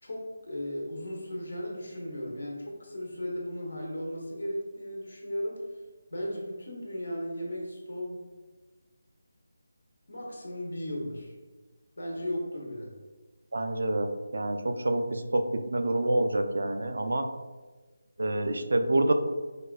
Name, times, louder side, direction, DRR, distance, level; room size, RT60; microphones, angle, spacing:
voice 1, 0.0-5.6 6.1-8.3 10.1-11.3 12.0-12.9, equal, 75° left, -1 dB, 1.0 m, -36 dB
voice 2, 13.5-17.3 18.2-19.1, right 1 dB, 70° right, 7 dB, 0.3 m, -27 dB
4.7 x 2.2 x 2.3 m, 1.3 s
figure-of-eight pair, 165°, 0 cm